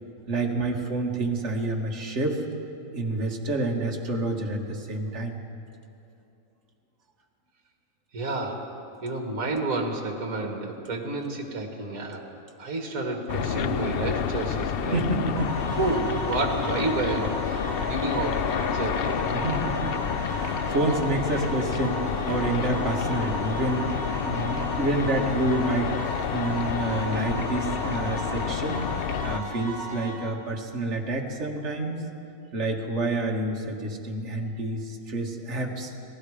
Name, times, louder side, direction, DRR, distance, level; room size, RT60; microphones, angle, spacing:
voice 1, 0.3-2.5 2.9-5.4 14.9-15.8 19.3-19.9 20.3-24.0 24.2-26.0 26.3-28.9 29.2-32.1 32.5-35.9, right 2 dB, 45° right, -1 dB, 2.2 m, -28 dB
voice 2, 8.1-8.6 9.0-12.3 12.6-15.0 15.8-19.2, right 2 dB, 60° right, 2 dB, 2.5 m, -30 dB
sound 1, 13.3-29.4, left 8 dB, 70° left, 0.5 m, -29 dB
sound 2, 15.4-30.1, right 2 dB, 10° right, 6.2 m, -36 dB
30.0 x 19.5 x 5.0 m, 2.7 s
omnidirectional pair, 1.6 m